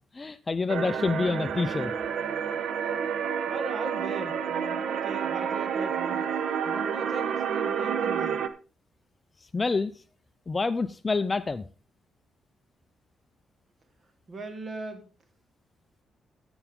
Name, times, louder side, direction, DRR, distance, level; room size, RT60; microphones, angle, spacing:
voice 1, 0.1-1.9 9.5-9.9 10.5-11.6, left 4 dB, 20° left, 12 dB, 0.4 m, -27 dB
sound 1, 0.7-8.5, right 7 dB, 65° right, 0.8 m, -29 dB
voice 2, 3.5-6.3 6.7-8.4 14.3-15.1, right 2 dB, 35° right, 7 dB, 1.8 m, -39 dB
14.0 x 7.1 x 3.6 m, 0.36 s
cardioid pair, 145°, 0 cm